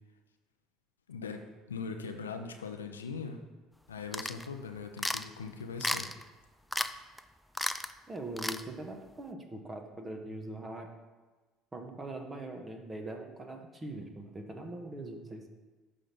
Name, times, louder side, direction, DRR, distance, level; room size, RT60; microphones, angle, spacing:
voice 1, 1.1-3.4 3.9-6.1, left 5 dB, 85° left, 6 dB, 0.6 m, -40 dB
sound 1, 4.1-4.5 5.0-5.3 5.8-6.2 6.7-6.9 7.2-7.3 7.5-7.9 8.4-8.6, left 1 dB, 5° left, 0.4 m, -33 dB
voice 2, 8.1-10.9 11.7-15.5, right 2 dB, 20° right, 4 dB, 1.4 m, -42 dB
11.0 x 3.6 x 6.0 m, 1.3 s
figure-of-eight pair, 60°, 0 cm